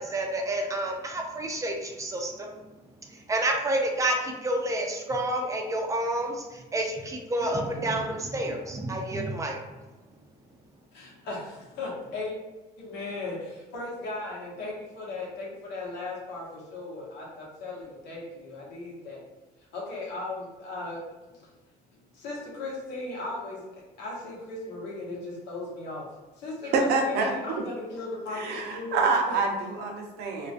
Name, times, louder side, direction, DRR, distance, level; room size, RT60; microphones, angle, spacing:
voice 1, 0.0-2.5 3.1-9.6, right 1 dB, 20° right, 1 dB, 0.4 m, -29 dB
voice 2, 10.9-12.4 12.8-19.3 19.7-21.0 21.3-21.5 22.1-26.1 26.4-29.4, left 2 dB, 85° left, -4 dB, 0.9 m, -37 dB
voice 3, 26.7-27.3 28.3-30.5, right 4 dB, 75° right, 2 dB, 0.5 m, -26 dB
2.4 x 2.2 x 2.5 m, 1.2 s
cardioid pair, 110°, 17 cm